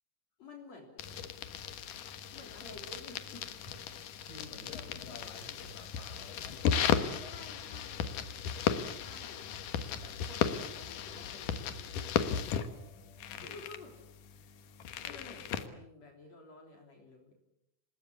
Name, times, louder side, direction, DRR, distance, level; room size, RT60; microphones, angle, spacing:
voice 1, 0.4-1.2 2.3-3.8 7.3-8.2 8.9-9.5 10.0-12.1 13.3-13.9 14.3-17.3, left 2 dB, 55° left, 1 dB, 4.5 m, -52 dB
sound 1, 1.0-15.7, left 8 dB, 90° left, 3.0 m, -36 dB
voice 2, 4.2-7.4 12.5-13.4, left 2 dB, 30° left, 5 dB, 5.0 m, -52 dB
27.5 x 20.0 x 8.3 m, 0.83 s
omnidirectional pair, 3.6 m